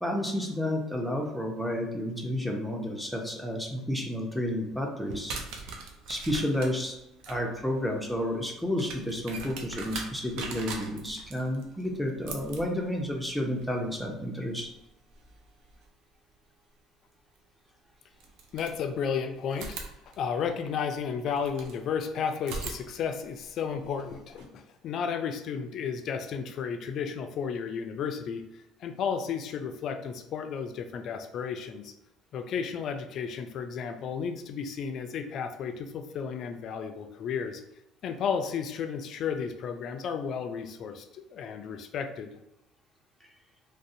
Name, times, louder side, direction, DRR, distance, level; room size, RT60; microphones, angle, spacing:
voice 1, 0.0-5.4 5.6-5.8 6.1-6.9 7.3-14.7, left 1 dB, ahead, 0 dB, 0.6 m, -31 dB
sound 1, 5.1-15.9 17.4-17.5 18.2-19.1 19.5-21.8 22.4-24.4, right 4 dB, 70° right, 0.4 m, -43 dB
voice 2, 18.5-19.8 20.2-31.9 32.3-37.6 38.0-42.3, left 6 dB, 55° left, 7 dB, 0.3 m, -33 dB
2.5 x 2.0 x 2.6 m, 0.88 s
supercardioid pair, 80°, 0 cm